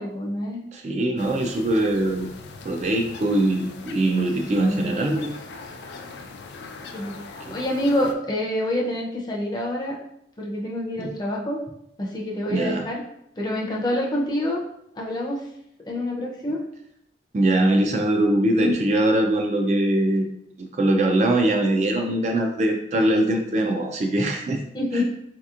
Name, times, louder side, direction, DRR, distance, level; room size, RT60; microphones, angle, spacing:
voice 1, 0.0-0.7 4.5-5.0 6.9-10.0 10.4-11.6 12.0-13.0 13.4-14.6 14.9-15.5 15.8-16.6 18.6-18.7 24.7-25.0, left 1 dB, 25° left, -2 dB, 0.5 m, -27 dB
voice 2, 0.7-2.3 2.6-5.4 7.5-7.6 11.0-11.1 12.5-12.8 17.3-20.3 20.6-24.6 24.9-25.0, right 1 dB, 40° right, 3 dB, 0.3 m, -22 dB
sound 1, 1.2-8.1, left 3 dB, 75° left, 0.4 m, -41 dB
4.1 x 2.8 x 2.4 m, 0.77 s
head